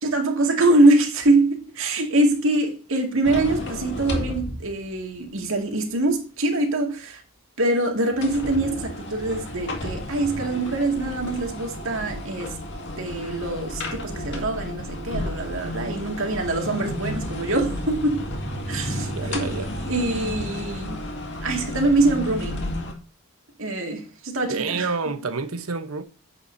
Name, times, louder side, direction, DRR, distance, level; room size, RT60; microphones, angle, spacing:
voice 1, 0.0-7.2 7.6-12.6 13.0-18.3 18.7-19.5 19.9-21.0 21.4-22.6 23.6-24.9, right 2 dB, 65° right, 2.2 m, -23 dB
sound 1, 3.2-5.0 5.4-5.5 8.1-22.9, left 1 dB, 55° left, 2.0 m, -32 dB
voice 2, 19.1-19.7 24.5-26.0, right 4 dB, 80° right, 1.0 m, -28 dB
10.0 x 7.9 x 2.7 m
head